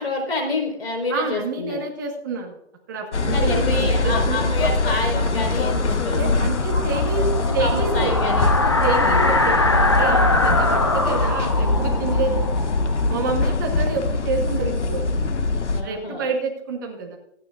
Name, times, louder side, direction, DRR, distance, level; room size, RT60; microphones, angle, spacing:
voice 1, 0.0-1.8 3.3-6.3 7.6-8.5 9.0-9.3 15.7-16.3, left 2 dB, 60° left, 2 dB, 4.3 m, -28 dB
voice 2, 1.1-2.6 2.9-4.4 6.2-8.2 8.5-12.5 13.1-15.0 15.8-17.2, right 4 dB, 15° right, 1 dB, 1.3 m, -28 dB
sound 1, 3.1-15.8, left 3 dB, 85° left, 1.5 m, -22 dB
sound 2, 5.1-13.8, left 2 dB, 25° left, 0.5 m, -24 dB
25.5 x 9.2 x 2.5 m, 0.80 s
hypercardioid pair, 175°, 35 cm